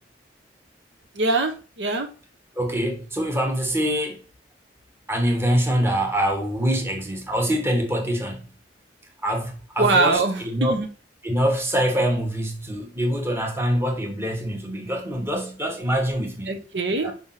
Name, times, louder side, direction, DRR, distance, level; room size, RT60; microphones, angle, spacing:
voice 1, 1.1-2.1 9.8-10.9 16.5-17.1, right 3 dB, 80° right, 0.9 m, -23 dB
voice 2, 2.5-4.2 5.1-8.5 9.2-10.7 11.2-16.6 17.0-17.1, equal, 15° right, 1.2 m, -24 dB
5.2 x 3.5 x 5.6 m
head